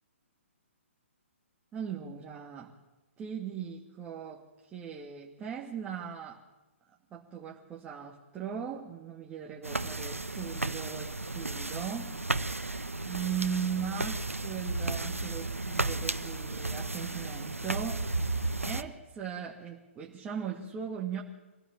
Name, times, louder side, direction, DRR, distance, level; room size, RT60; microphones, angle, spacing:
voice 1, 1.7-2.7 3.2-6.4 7.1-12.2 13.1-18.0 18.6-21.2, right 7 dB, 15° right, -2 dB, 2.5 m, -38 dB
sound 1, 9.6-18.8, right 2 dB, 90° right, 1.3 m, -34 dB
25.5 x 17.0 x 8.9 m, 1.1 s
figure-of-eight pair, 130°, 7 cm